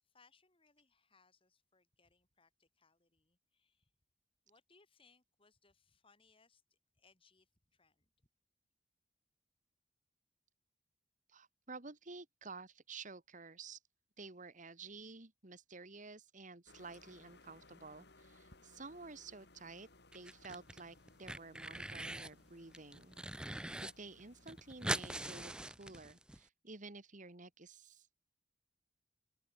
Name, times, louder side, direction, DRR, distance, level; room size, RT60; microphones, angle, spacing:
voice 1, 0.0-3.9 4.5-8.1, left 4 dB, 30° left, 5.3 m, -71 dB
voice 2, 11.3-13.8 14.2-19.9 20.1-23.1 23.8-28.1, right 3 dB, 45° right, 2.3 m, -52 dB
sound 1, 16.7-25.5, left 2 dB, 65° left, 5.5 m, -64 dB
sound 2, 20.1-20.8 21.1-22.3 22.7-23.9 24.2-24.3 24.5-26.4, right 1 dB, 5° right, 0.4 m, -42 dB
head